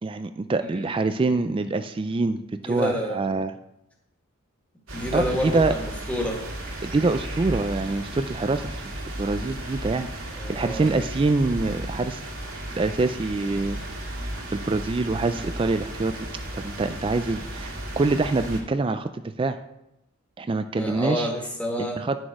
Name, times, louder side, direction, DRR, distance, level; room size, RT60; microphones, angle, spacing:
voice 1, 0.0-3.5 5.1-5.7 6.8-8.8 9.2-10.1 10.5-12.2 12.7-13.8 14.5-16.1 16.5-19.6 20.4-21.3 21.8-22.2, right 3 dB, 25° right, 10 dB, 0.3 m, -25 dB
voice 2, 2.7-3.4 4.9-6.4 10.4-10.9 20.8-22.0, equal, 5° left, -1 dB, 1.8 m, -29 dB
sound 1, 4.9-18.6, right 1 dB, 75° right, 2.0 m, -34 dB
9.8 x 6.2 x 4.8 m, 0.85 s
head